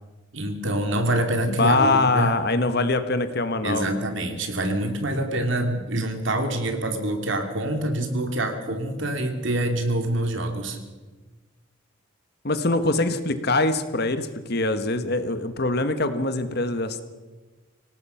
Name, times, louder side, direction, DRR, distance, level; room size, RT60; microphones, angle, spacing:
voice 1, 0.3-2.3 3.6-10.8, right 1 dB, 60° right, 5 dB, 2.9 m, -26 dB
voice 2, 1.5-3.9 12.4-17.0, left 2 dB, 50° left, 9 dB, 1.5 m, -23 dB
25.5 x 18.0 x 5.8 m, 1.3 s
head